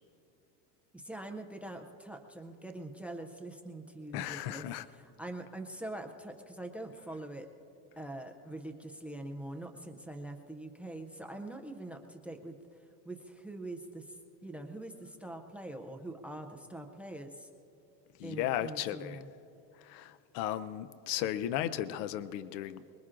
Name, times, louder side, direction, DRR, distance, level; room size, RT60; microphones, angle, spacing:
voice 1, 0.9-7.5 8.0-12.6 13.0-17.5 18.2-19.3, right 1 dB, 5° right, 6 dB, 0.3 m, -44 dB
voice 2, 4.1-4.9 18.2-19.2 19.8-22.8, left 12 dB, 70° left, 14 dB, 0.7 m, -35 dB
24.0 x 21.5 x 2.5 m, 2.7 s
cardioid pair, 150°, 45 cm